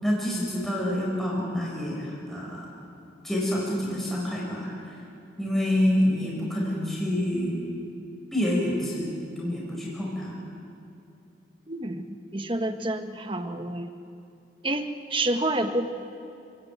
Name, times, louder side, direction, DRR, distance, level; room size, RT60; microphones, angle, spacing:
voice 1, 0.0-2.7 3.2-4.9 5.4-7.6 8.3-10.3, left 1 dB, ahead, -4 dB, 5.2 m, -27 dB
voice 2, 11.7-12.1 12.3-13.9 14.6-15.9, right 1 dB, 30° right, 7 dB, 1.3 m, -28 dB
29.0 x 16.5 x 9.3 m, 2.6 s
head